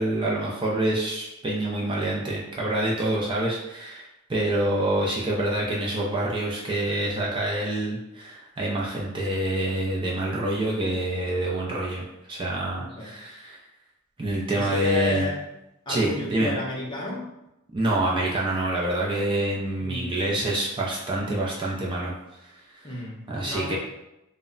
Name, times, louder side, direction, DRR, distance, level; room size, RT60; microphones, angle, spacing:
voice 1, 0.0-13.6 14.2-15.3 15.9-16.5 17.7-22.1 22.4-22.9 23.3-23.8, right 1 dB, 25° right, -4 dB, 0.4 m, -27 dB
voice 2, 12.7-13.1 14.5-15.4 15.9-17.2 19.8-20.1 22.8-23.8, left 1 dB, 25° left, -4 dB, 0.6 m, -33 dB
2.1 x 2.1 x 3.6 m, 0.90 s
head